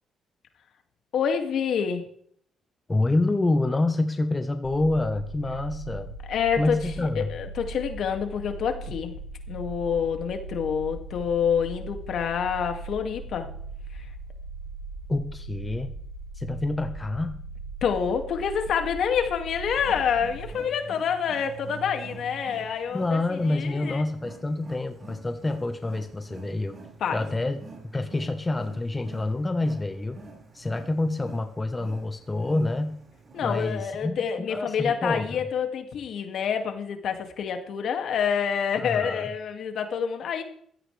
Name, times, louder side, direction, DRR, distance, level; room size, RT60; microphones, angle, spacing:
voice 1, 1.1-2.1 6.3-9.2 9.5-13.5 13.9-14.1 17.8-24.0 27.0-27.3 33.3-40.4, left 7 dB, 70° left, 5 dB, 2.4 m, -27 dB
voice 2, 2.9-6.1 6.6-7.3 15.1-15.9 16.4-17.4 22.9-26.8 27.1-27.6 27.9-30.2 30.5-33.0 33.4-35.4 38.8-39.3, left 2 dB, 20° left, 7 dB, 1.2 m, -27 dB
sound 1, 4.6-20.5, right 3 dB, 85° left, 6.2 m, -39 dB
Wild animals, 19.7-34.0, right 4 dB, 45° right, 5.6 m, -46 dB
16.0 x 14.0 x 3.4 m, 0.62 s
cardioid pair, 90°, 0 cm